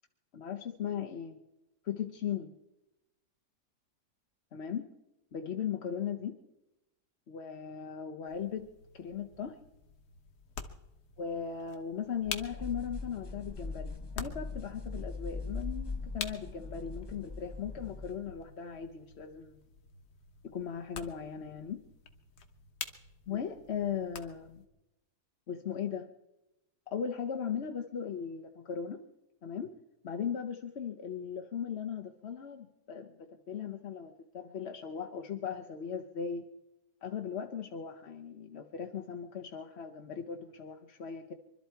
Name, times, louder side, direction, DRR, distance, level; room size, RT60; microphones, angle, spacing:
voice 1, 0.3-1.4 1.8-2.5 4.5-4.9 5.3-6.4 7.3-9.6 11.2-19.6 20.4-21.8 23.3-24.6 25.5-26.1 26.9-29.0 29.4-29.7 30.0-36.5 37.0-41.3, left 7 dB, 50° left, 4 dB, 1.0 m, -38 dB
sound 1, 8.3-24.7, left 6 dB, 80° left, 1.7 m, -48 dB
sound 2, 12.2-18.2, left 3 dB, 30° left, 0.4 m, -41 dB
24.0 x 12.5 x 4.5 m, 0.94 s
omnidirectional pair, 1.8 m